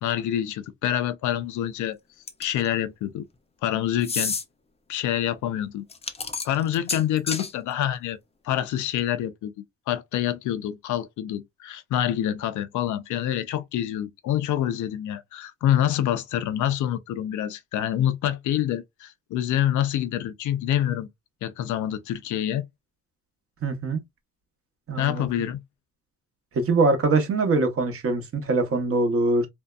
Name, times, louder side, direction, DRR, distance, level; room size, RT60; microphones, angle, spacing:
voice 1, 0.0-2.0 2.4-3.2 3.6-4.4 4.9-5.8 6.4-8.2 8.4-9.5 9.9-21.1 21.4-22.7 25.0-25.6, left 11 dB, 75° left, 0.5 m, -26 dB
sound 1, 2.3-2.7 4.0-4.4 5.9-7.5, left 4 dB, 20° left, 0.5 m, -30 dB
voice 2, 23.6-24.0 24.9-25.3 26.5-29.5, right 3 dB, 50° right, 0.8 m, -23 dB
2.6 x 2.1 x 2.3 m
cardioid pair, 90°, 30 cm